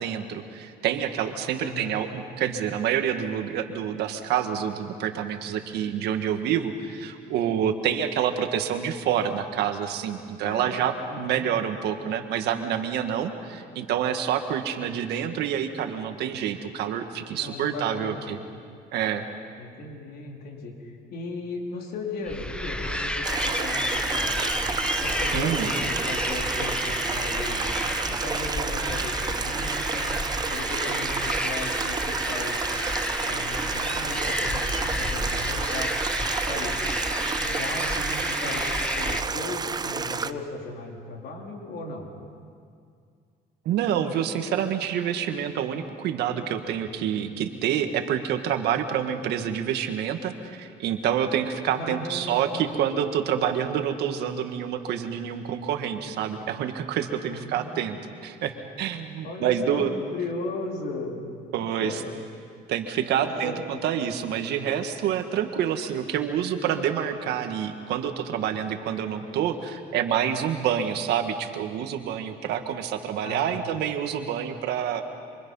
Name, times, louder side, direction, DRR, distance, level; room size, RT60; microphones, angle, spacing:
voice 1, 0.0-18.4 18.9-19.3 25.3-25.7 43.7-58.0 58.2-59.9 61.5-62.0 62.7-75.0, right 9 dB, 80° right, 6 dB, 1.8 m, -27 dB
voice 2, 1.6-2.0 10.4-10.7 11.1-11.5 17.4-18.3 19.6-24.4 25.0-27.6 28.1-30.2 30.5-32.6 33.2-35.9 36.3-36.8 37.4-42.1 51.7-52.9 57.3-58.0 59.2-59.9 60.1-62.1 63.0-63.6 73.2-73.6, left 3 dB, 70° left, 0 dB, 4.3 m, -36 dB
sound 1, 22.3-39.2, left 1 dB, 5° left, 1.4 m, -30 dB
Stream, 23.2-40.3, right 5 dB, 25° right, 0.7 m, -30 dB
26.5 x 25.5 x 5.7 m, 2.3 s
cardioid pair, 110°, 17 cm